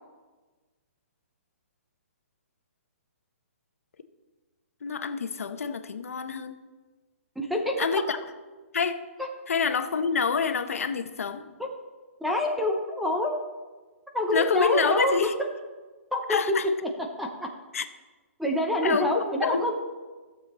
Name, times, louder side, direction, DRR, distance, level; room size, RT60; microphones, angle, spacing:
voice 1, 4.8-6.6 7.8-8.2 8.7-9.0 9.5-11.6 14.3-15.3 16.3-16.7 17.7-17.8 18.8-19.6, left 6 dB, 75° left, 9 dB, 0.9 m, -27 dB
voice 2, 7.4-7.8 11.6-11.7 12.2-13.4 14.1-15.1 16.1-16.4 17.2-17.5 18.4-19.7, left 1 dB, ahead, 1 dB, 0.5 m, -26 dB
15.0 x 7.0 x 4.1 m, 1.3 s
hypercardioid pair, 175°, 8 cm